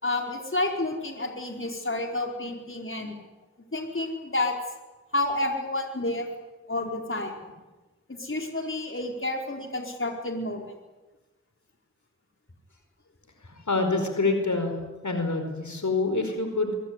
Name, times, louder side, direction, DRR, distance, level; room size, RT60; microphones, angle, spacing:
voice 1, 0.0-3.1 3.7-4.5 5.1-6.3 6.7-7.4 8.1-10.7, left 2 dB, 45° left, 2 dB, 4.6 m, -30 dB
voice 2, 13.7-14.7 15.0-16.7, left 3 dB, 75° left, 6 dB, 4.9 m, -26 dB
24.0 x 23.0 x 9.9 m, 1.1 s
wide cardioid pair, 45°, 30 cm